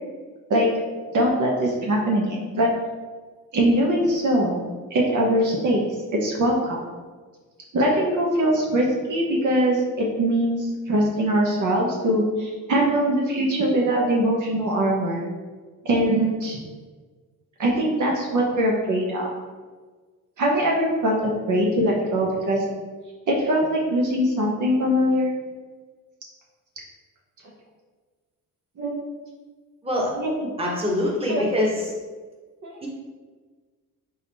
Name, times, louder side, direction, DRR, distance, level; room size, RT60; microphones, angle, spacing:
voice 1, 1.1-2.7 3.5-4.6 4.9-6.9 7.7-15.2 15.8-16.6 17.6-19.3 20.4-22.6 23.3-25.4 28.8-28.9 30.1-30.3 31.3-31.4 32.6-32.7, right 1 dB, 55° right, -2 dB, 0.9 m, -22 dB
voice 2, 30.6-31.9 32.8-32.9, left 1 dB, 15° right, -3 dB, 1.2 m, -24 dB
3.9 x 3.6 x 3.4 m, 1.4 s
cardioid pair, 95°, 36 cm